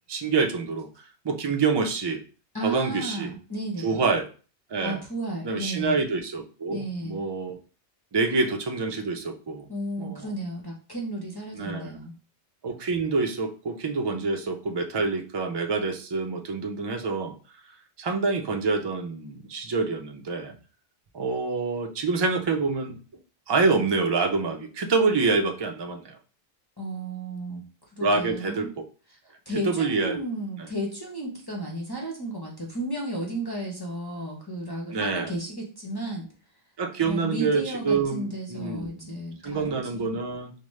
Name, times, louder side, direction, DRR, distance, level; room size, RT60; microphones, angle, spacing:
voice 1, 0.1-0.9 1.2-2.2 2.6-3.3 3.8-4.3 4.7-5.0 5.4-7.6 8.1-9.7 10.0-10.3 11.5-12.0 12.6-17.3 18.0-20.5 21.1-23.0 23.5-26.2 28.0-28.7 29.7-30.2 34.9-35.3 36.8-39.1 39.4-40.5, right 4 dB, 40° right, 4 dB, 0.4 m, -26 dB
voice 2, 2.5-4.0 4.8-6.0 6.7-7.2 9.7-12.1 26.8-27.6 28.0-28.7 29.1-29.2 29.5-36.3 37.0-40.2, right 1 dB, 25° left, -2 dB, 0.7 m, -33 dB
4.9 x 2.1 x 3.1 m, 0.37 s
omnidirectional pair, 1.1 m